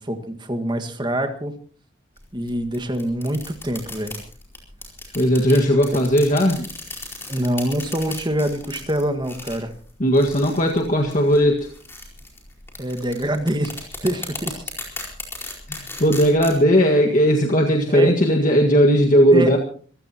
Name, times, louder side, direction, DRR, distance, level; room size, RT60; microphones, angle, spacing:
voice 1, 0.0-1.5 2.3-4.1 7.3-9.7 12.8-14.6 17.9-18.1 19.3-19.6, right 1 dB, 20° right, 7 dB, 1.7 m, -25 dB
sound 1, 2.2-16.6, left 2 dB, 10° left, 4.6 m, -37 dB
voice 2, 5.1-6.7 10.0-11.7 15.7-19.6, equal, 40° left, 1 dB, 1.8 m, -17 dB
26.0 x 15.5 x 3.0 m, 0.43 s
head